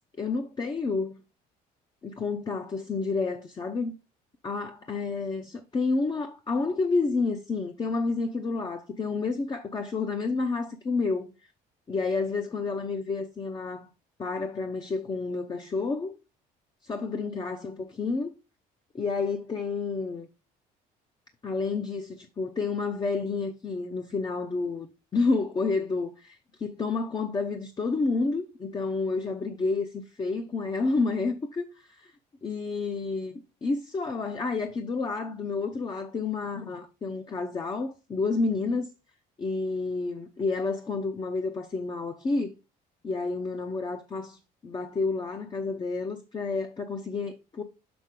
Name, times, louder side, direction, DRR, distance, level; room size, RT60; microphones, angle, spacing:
voice 1, 0.2-1.2 2.0-3.9 4.4-11.3 11.9-13.9 14.2-16.2 16.8-18.3 18.9-20.3 21.4-24.9 25.1-32.1 32.4-38.9 39.4-42.6 43.0-47.6, left 3 dB, 25° left, 0.7 m, -30 dB
6.4 x 6.1 x 3.7 m
cardioid pair, 115°, 16 cm